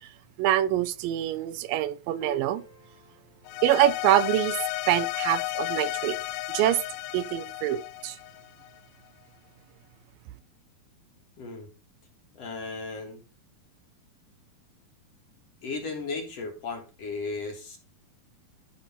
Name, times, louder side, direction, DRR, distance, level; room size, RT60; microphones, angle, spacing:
voice 1, 0.4-2.6 3.6-4.6 4.9-6.2 6.5-6.8 7.1-8.2, right 13 dB, 80° right, 2.1 m, -25 dB
Piano, 2.2-8.8, left 2 dB, 30° left, 3.4 m, -53 dB
sound 1, 3.5-8.8, left 18 dB, 85° left, 2.4 m, -33 dB
voice 2, 11.4-11.7 12.3-13.2 15.6-17.8, left 3 dB, 50° left, 2.2 m, -35 dB
12.0 x 5.2 x 4.3 m
omnidirectional pair, 4.3 m